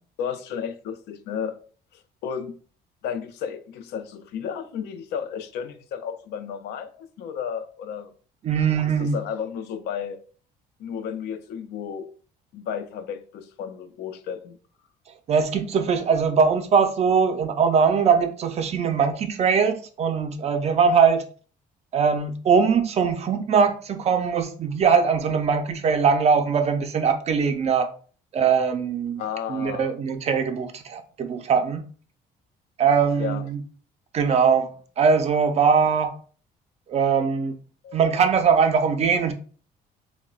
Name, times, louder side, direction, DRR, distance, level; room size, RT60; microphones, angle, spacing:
voice 1, 0.2-1.6 1.9-2.6 3.0-8.1 8.8-10.2 10.8-12.1 12.5-14.6 29.2-29.9 33.2-33.5 37.8-38.0, left 7 dB, 75° left, 0.4 m, -33 dB
voice 2, 8.4-9.2 15.3-21.2 21.9-27.9 28.3-29.2 29.5-31.8 32.8-33.6 34.1-34.7 35.0-36.2 36.9-37.5 37.9-39.3, right 6 dB, 40° right, 0.4 m, -21 dB
2.9 x 2.0 x 2.3 m
cardioid pair, 110°, 17 cm